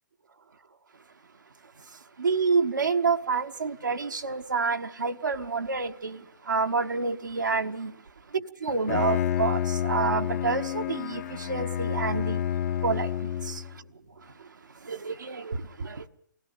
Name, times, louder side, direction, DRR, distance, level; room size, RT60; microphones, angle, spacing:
voice 1, 1.9-8.0 8.3-12.5 12.8-13.8 14.2-14.6 14.8-16.1, right 4 dB, 75° right, 1.2 m, -29 dB
Bowed string instrument, 8.7-13.8, left 10 dB, 45° left, 1.2 m, -29 dB
24.0 x 16.0 x 8.3 m
figure-of-eight pair, 125°, 10 cm